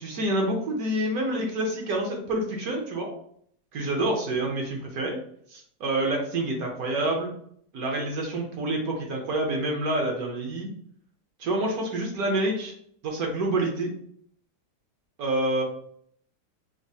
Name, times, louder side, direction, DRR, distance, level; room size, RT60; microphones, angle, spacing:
voice 1, 0.0-3.1 3.7-5.2 5.5-7.3 7.7-10.7 11.4-12.7 13.0-13.9 15.2-15.6, right 1 dB, 65° right, 0 dB, 1.2 m, -27 dB
5.1 x 2.0 x 2.7 m, 0.65 s
omnidirectional pair, 1.8 m